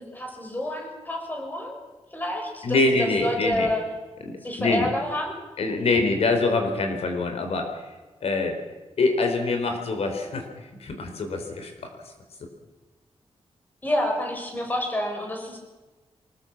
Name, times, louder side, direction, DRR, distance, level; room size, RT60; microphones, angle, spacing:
voice 1, 0.0-1.8 2.1-3.8 4.4-5.4 5.8-6.0 13.8-15.6, left 1 dB, 15° left, 2 dB, 5.2 m, -28 dB
voice 2, 2.6-3.7 4.3-4.9 5.6-7.7 8.2-8.6 9.0-10.5 10.8-11.7, left 3 dB, 75° left, 5 dB, 4.4 m, -24 dB
24.0 x 20.0 x 7.4 m, 1.2 s
wide cardioid pair, 170°, 11 cm